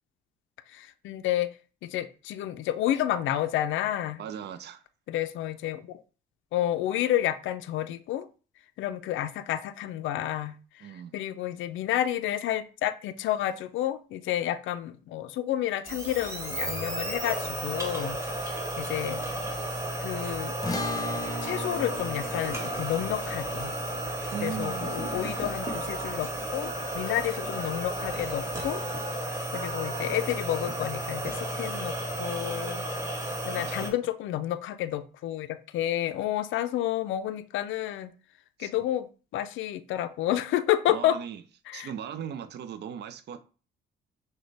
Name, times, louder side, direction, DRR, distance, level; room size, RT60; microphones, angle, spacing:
voice 1, 0.7-1.5 1.8-4.2 5.1-6.0 6.5-8.3 8.8-10.5 11.1-18.2 18.8-19.2 20.0-20.5 21.4-23.7 24.4-26.3 26.5-28.8 29.5-32.8 33.5-38.1 38.6-39.1 39.3-41.2 41.7-41.9, left 12 dB, 75° left, 0.4 m, -30 dB
voice 2, 4.2-4.8 10.8-11.1 19.0-19.1 24.3-24.9 33.3-33.7 38.6-38.7 40.9-41.4 41.7-43.4, right 8 dB, 60° right, 0.5 m, -38 dB
sound 1, 15.8-33.9, right 1 dB, 15° right, 1.5 m, -33 dB
Telephone, 18.3-18.8 19.3-19.9 20.4-21.0 21.4-22.0 22.4-23.0 23.6-24.1 24.6-25.2 25.6-26.1 26.6-27.2 27.6-28.1 28.6-29.1 29.5-30.1, right 3 dB, 30° right, 0.8 m, -42 dB
sound 2, 20.6-27.1, left 2 dB, 20° left, 0.9 m, -38 dB
6.1 x 2.2 x 3.3 m
cardioid pair, 90°, 20 cm